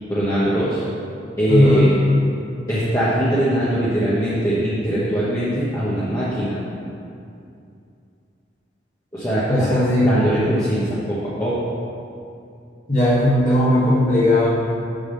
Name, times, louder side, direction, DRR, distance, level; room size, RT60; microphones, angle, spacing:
voice 1, 0.1-0.8 1.4-1.9 2.7-6.6 9.1-11.6, right 1 dB, 20° left, -11 dB, 1.2 m, -21 dB
voice 2, 1.5-1.9 9.5-10.3 12.9-14.5, left 1 dB, 45° left, -9 dB, 1.7 m, -17 dB
8.3 x 3.7 x 6.8 m, 2.5 s
head